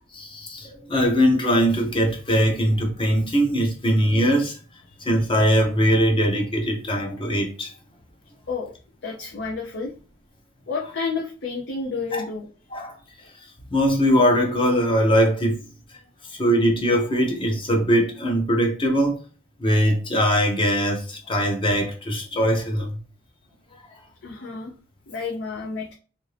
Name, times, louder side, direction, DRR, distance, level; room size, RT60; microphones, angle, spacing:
voice 1, 0.2-4.6 5.0-7.7 12.1-12.2 12.7-13.0 13.7-15.6 16.3-19.2 19.6-23.0 23.7-23.8, equal, 25° left, 0.8 m, -21 dB
voice 2, 9.0-9.9 10.7-12.5 13.0-13.1 24.2-24.7 25.1-25.9, left 4 dB, 60° left, 0.6 m, -30 dB
2.7 x 2.7 x 3.2 m
head